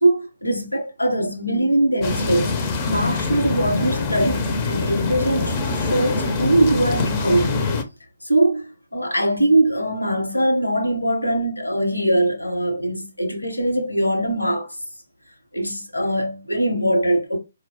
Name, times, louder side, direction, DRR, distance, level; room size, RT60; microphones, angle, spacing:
voice 1, 0.0-7.6 8.2-14.8 15.5-17.4, right 1 dB, 80° left, 0.9 m, -21 dB
sound 1, 2.0-7.8, left 3 dB, 25° left, 0.5 m, -24 dB
4.1 x 2.2 x 2.8 m
figure-of-eight pair, 135°, 0 cm